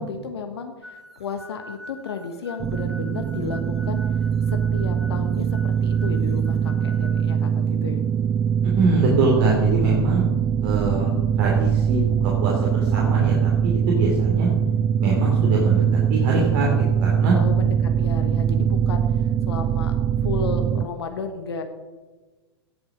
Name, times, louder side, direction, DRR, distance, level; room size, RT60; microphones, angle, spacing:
voice 1, 0.0-4.2 4.5-8.0 17.3-19.9 20.2-21.6, left 5 dB, 70° left, 6 dB, 1.3 m, -33 dB
sound 1, 0.8-7.3, left 1 dB, 5° right, 1.8 m, -44 dB
sound 2, 2.6-20.9, right 8 dB, 20° right, 0.4 m, -22 dB
voice 2, 8.8-10.2 10.6-11.1 11.4-14.5 15.0-17.4, right 2 dB, 50° right, -2 dB, 2.9 m, -23 dB
17.5 x 7.2 x 5.1 m, 1.2 s
figure-of-eight pair, 100°, 14 cm